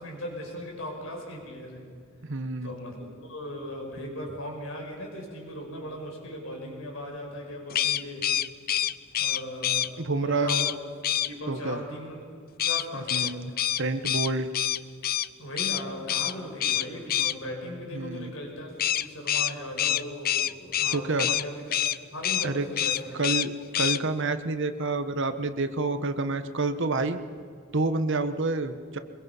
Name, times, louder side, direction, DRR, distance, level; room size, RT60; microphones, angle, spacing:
voice 1, 0.0-1.9 2.6-8.3 9.2-10.7 11.2-12.2 12.6-13.5 15.4-21.6 22.1-23.2, left 1 dB, 75° left, 0 dB, 5.4 m, -38 dB
voice 2, 2.2-2.7 10.0-10.5 11.5-11.8 12.9-13.5 13.8-14.5 17.9-18.3 20.9-21.3 22.4-22.6 23.1-27.2 27.7-29.0, right 3 dB, 65° right, 10 dB, 1.2 m, -28 dB
sound 1, 7.7-9.9 10.5-10.7 11.0-11.3 12.6-15.3 15.6-15.8 16.1-16.3 16.6-17.3 18.8-21.4 21.7-22.0 22.2-22.5 22.8-23.5 23.7-24.0, left 11 dB, 45° left, 0.5 m, -26 dB
23.5 x 22.0 x 5.5 m, 2.2 s
head